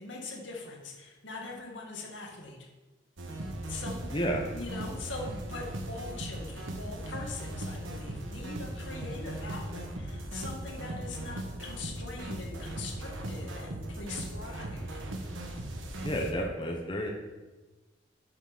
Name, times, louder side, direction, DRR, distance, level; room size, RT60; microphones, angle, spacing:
voice 1, 0.0-2.7 3.7-4.1 4.5-15.0, left 3 dB, 75° left, 0 dB, 2.1 m, -42 dB
sound 1, 3.2-16.3, right 1 dB, 90° right, 1.3 m, -38 dB
voice 2, 4.1-4.4 16.0-17.1, equal, 25° left, 0 dB, 1.0 m, -31 dB
8.5 x 6.0 x 6.1 m, 1.2 s
head